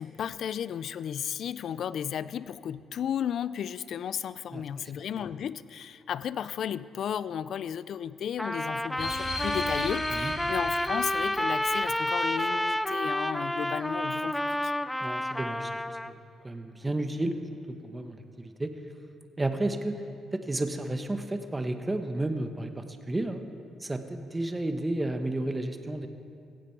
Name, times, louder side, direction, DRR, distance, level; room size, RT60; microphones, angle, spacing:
voice 1, 0.0-14.7, left 9 dB, 65° left, 17 dB, 0.4 m, -34 dB
Trumpet, 8.4-16.1, left 1 dB, 5° left, 0.4 m, -30 dB
sound 1, 9.0-14.0, left 2 dB, 40° left, 4.1 m, -39 dB
voice 2, 15.0-15.7 16.1-16.2 16.4-17.3 17.8-18.7 19.4-20.0 20.3-23.4 23.8-26.1, right 2 dB, 15° right, 7 dB, 1.1 m, -32 dB
16.5 x 15.5 x 4.6 m, 2.5 s
cardioid pair, 90°, 0 cm